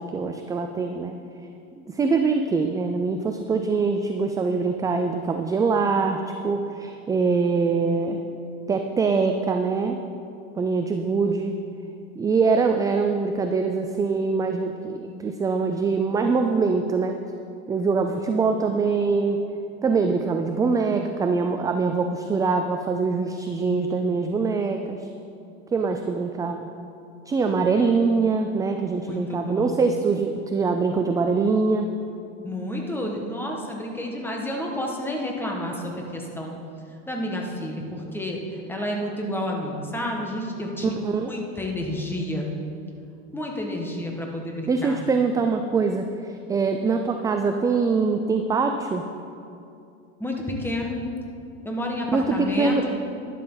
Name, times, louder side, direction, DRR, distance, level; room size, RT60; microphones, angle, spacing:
voice 1, 0.1-1.1 1.8-8.2 8.7-10.0 10.5-11.5 12.2-17.2 17.7-19.4 19.8-25.1 25.7-26.7 27.3-31.9 40.8-41.3 44.7-49.0 52.1-52.8, right 4 dB, 10° right, 5 dB, 0.3 m, -23 dB
voice 2, 29.0-29.8 32.4-36.5 37.1-37.8 38.1-40.9 41.3-42.5 43.3-45.0 50.2-51.0 51.6-52.9, left 1 dB, 5° left, 0 dB, 1.7 m, -30 dB
11.5 x 11.5 x 4.0 m, 2.6 s
supercardioid pair, 120°, 34 cm